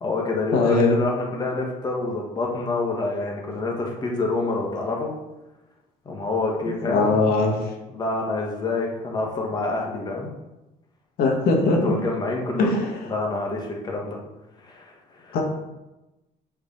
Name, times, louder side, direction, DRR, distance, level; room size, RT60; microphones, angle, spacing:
voice 1, 0.0-5.1 6.0-7.2 7.9-10.3 11.7-14.2 14.6-14.9 15.2-15.4, left 2 dB, 25° left, 0 dB, 1.5 m, -27 dB
voice 2, 0.5-1.0 6.8-7.5 11.2-11.9 12.6-12.9 15.3-15.4, left 3 dB, 75° left, 1 dB, 1.7 m, -20 dB
6.7 x 4.6 x 5.5 m, 0.99 s
cardioid pair, 165°, 16 cm